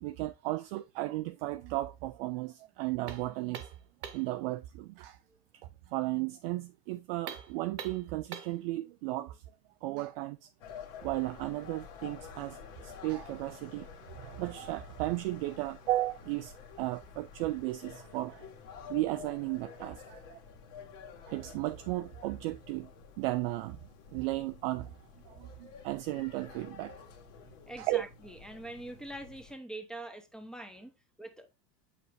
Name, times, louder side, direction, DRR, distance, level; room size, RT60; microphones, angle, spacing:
voice 1, 0.0-3.6 4.1-5.2 5.9-9.4 9.8-10.5 11.0-13.9 14.2-18.5 18.9-20.4 21.3-22.9 23.2-23.8 24.1-25.0 25.3-26.9 27.8-28.0, right 18 dB, 40° right, 0.4 m, -35 dB
sound 1, 3.1-4.4 7.2-8.6, right 8 dB, 75° right, 1.2 m, -44 dB
sound 2, 10.6-29.5, left 6 dB, 50° left, 1.8 m, -50 dB
voice 2, 27.7-30.9 31.2-31.5, right 1 dB, ahead, 0.9 m, -44 dB
7.8 x 5.7 x 2.6 m
figure-of-eight pair, 85°, 48 cm